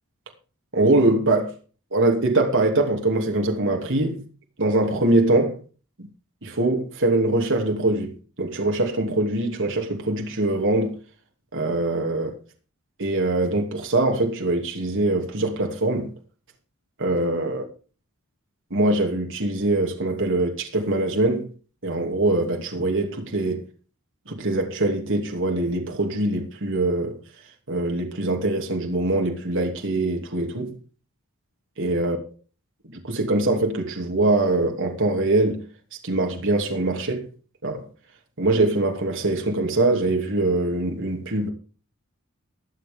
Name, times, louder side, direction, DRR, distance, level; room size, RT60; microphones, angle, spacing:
voice 1, 0.7-1.5 1.9-4.2 4.6-5.6 6.4-8.1 8.4-11.0 11.5-12.4 13.0-16.1 17.0-17.6 18.7-21.5 21.8-23.6 24.3-27.2 27.7-30.8 31.8-32.2 32.9-35.6 36.0-37.3 37.6-37.8 38.4-41.5, right 2 dB, 60° right, 2.9 m, -23 dB
22.0 x 7.5 x 3.7 m
head